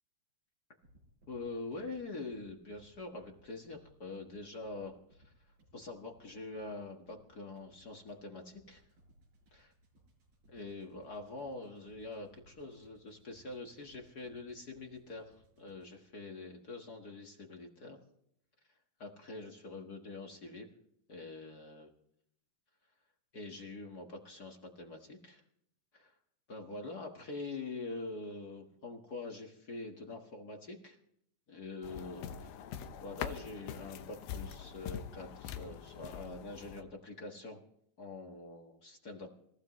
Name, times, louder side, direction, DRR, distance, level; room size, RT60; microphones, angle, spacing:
sound 1, 0.8-16.1, right 1 dB, 80° right, 7.1 m, -66 dB
voice 1, 1.3-5.3 5.7-8.8 9.5-9.7 10.5-18.0 19.0-20.7 21.1-21.9 23.3-25.4 25.9-26.1 26.5-31.0 31.5-32.5 33.0-37.6 38.0-39.3, left 3 dB, 45° left, 2 dB, 1.3 m, -45 dB
sound 2, 31.8-36.8, left 8 dB, 90° left, 2.8 m, -44 dB
27.5 x 15.0 x 3.1 m, 0.71 s
omnidirectional pair, 4.0 m